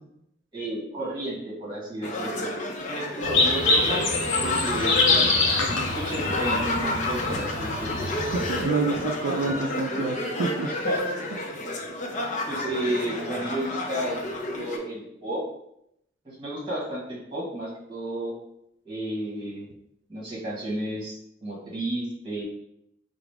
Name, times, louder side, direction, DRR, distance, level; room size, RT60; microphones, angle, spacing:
voice 1, 0.5-2.5 2.8-4.1 4.4-5.1 5.6-8.1 10.6-11.0 12.5-14.2 14.6-15.4 16.2-18.4 18.8-19.7 20.1-22.4, right 1 dB, 25° right, -5 dB, 1.4 m, -32 dB
sound 1, 2.0-14.8, left 2 dB, 40° left, 0.5 m, -30 dB
sound 2, 3.2-8.6, left 3 dB, 90° left, 0.8 m, -25 dB
sound 3, 5.1-9.7, equal, 45° right, 0.8 m, -42 dB
voice 2, 8.3-10.7, right 3 dB, 80° right, 3 dB, 0.4 m, -28 dB
4.7 x 2.0 x 3.3 m, 0.77 s
head